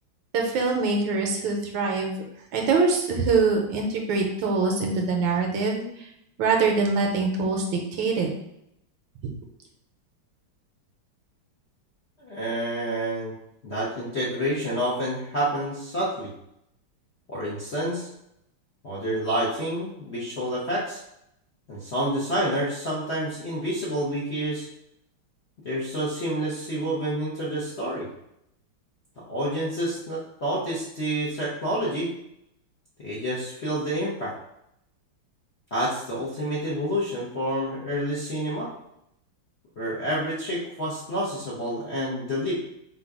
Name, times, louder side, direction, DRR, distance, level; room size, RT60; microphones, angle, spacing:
voice 1, 0.3-2.1 2.5-6.1 6.4-8.3 9.2-9.3, right 4 dB, 75° right, 1 dB, 1.3 m, -24 dB
voice 2, 12.2-13.3 13.6-16.3 17.3-18.1 18.8-21.0 21.7-24.7 25.6-28.1 29.2-32.1 33.0-34.3 35.7-38.7 39.8-42.6, right 1 dB, 50° left, -8 dB, 0.8 m, -28 dB
3.9 x 2.3 x 4.6 m, 0.78 s
omnidirectional pair, 2.3 m